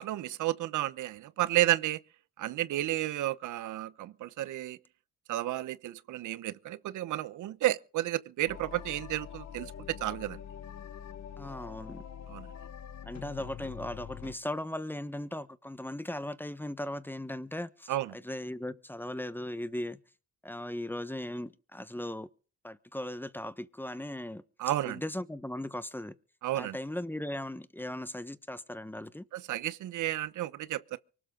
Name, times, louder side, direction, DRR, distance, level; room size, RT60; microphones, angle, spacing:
voice 1, 0.0-2.0 2.4-4.8 5.3-10.4 12.3-12.5 17.9-18.1 24.6-25.0 26.4-26.8 29.3-31.0, right 14 dB, 80° right, 1.0 m, -32 dB
sound 1, 8.5-14.3, left 8 dB, 65° left, 1.5 m, -44 dB
voice 2, 11.4-12.0 13.0-20.0 20.4-22.3 22.6-24.4 24.8-26.1 26.5-29.2, left 1 dB, 5° left, 1.2 m, -38 dB
24.5 x 12.5 x 3.9 m
cardioid pair, 90°, 30 cm